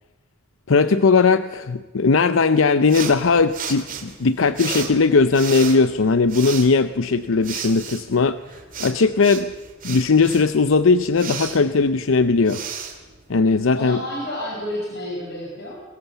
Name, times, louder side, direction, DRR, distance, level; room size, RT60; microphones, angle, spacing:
voice 1, 0.7-8.4 8.8-9.5 9.8-12.6 13.3-14.0, left 4 dB, 80° left, 13 dB, 0.6 m, -18 dB
sound 1, 2.9-13.8, right 6 dB, 40° right, 2.8 m, -34 dB
voice 2, 13.7-15.7, left 1 dB, 55° left, -3 dB, 5.2 m, -30 dB
23.0 x 20.5 x 7.0 m, 1.2 s
head